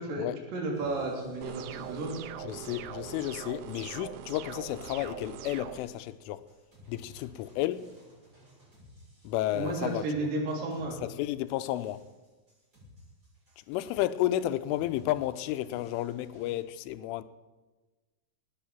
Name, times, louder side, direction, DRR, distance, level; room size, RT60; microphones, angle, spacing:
voice 1, 0.5-2.1 9.5-11.0, right 2 dB, 50° right, 4.6 m, -32 dB
sound 1, 0.7-16.6, equal, 20° right, 7.3 m, -57 dB
sound 2, 1.4-5.8, right 9 dB, 85° right, 3.2 m, -42 dB
voice 2, 2.4-6.4 6.9-7.9 9.2-10.3 11.0-12.0 13.7-17.2, left 14 dB, 90° left, 3.2 m, -32 dB
19.0 x 9.7 x 7.3 m
omnidirectional pair, 5.5 m